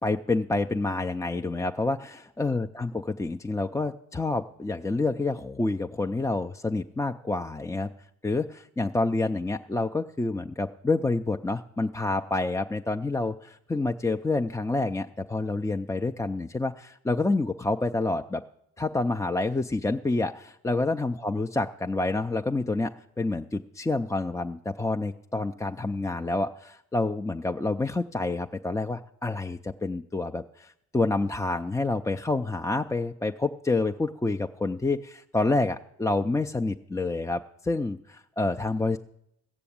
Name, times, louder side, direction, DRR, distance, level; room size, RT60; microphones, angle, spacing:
voice 1, 0.0-2.9 3.2-7.9 8.2-18.4 18.8-39.0, left 2 dB, 10° left, 4 dB, 0.4 m, -28 dB
16.0 x 6.9 x 8.6 m, 0.78 s
cardioid pair, 90°, 30 cm